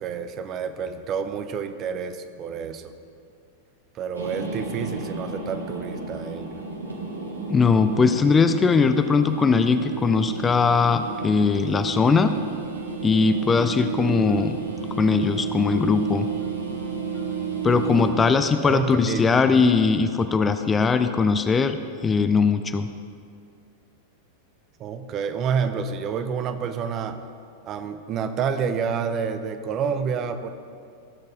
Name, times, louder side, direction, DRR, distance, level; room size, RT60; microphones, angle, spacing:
voice 1, 0.0-2.9 3.9-6.5 18.6-19.3 24.8-27.2 27.6-30.5, right 6 dB, 35° right, 9 dB, 0.7 m, -28 dB
sound 1, 4.1-18.1, right 5 dB, 75° right, 1.3 m, -31 dB
voice 2, 7.5-12.4 13.0-14.6 15.0-16.3 17.6-22.9, left 5 dB, 20° left, 9 dB, 0.4 m, -20 dB
sound 2, 13.6-13.9 14.3-14.6 15.0-15.3 15.7-16.0 16.4-16.5 17.1-17.3 17.9-18.0 18.6-18.7 19.4-19.5, left 7 dB, 40° left, 2.6 m, -39 dB
17.5 x 6.5 x 3.7 m, 2.3 s
figure-of-eight pair, 90°, 0 cm